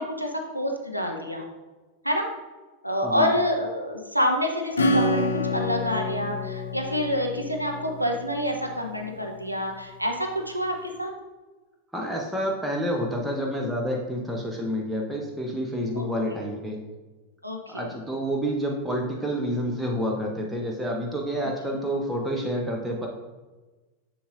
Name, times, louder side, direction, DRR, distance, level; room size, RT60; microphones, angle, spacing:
voice 1, 0.0-1.4 2.0-2.3 2.8-11.1 15.9-16.0 17.4-17.9, equal, 90° right, 2 dB, 0.7 m, -27 dB
Acoustic guitar / Strum, 4.8-9.0, left 2 dB, 70° left, 0.6 m, -28 dB
voice 2, 11.9-16.8 17.7-23.1, equal, 5° right, -1 dB, 0.9 m, -28 dB
7.0 x 7.0 x 2.5 m, 1.2 s
figure-of-eight pair, 90°, 0 cm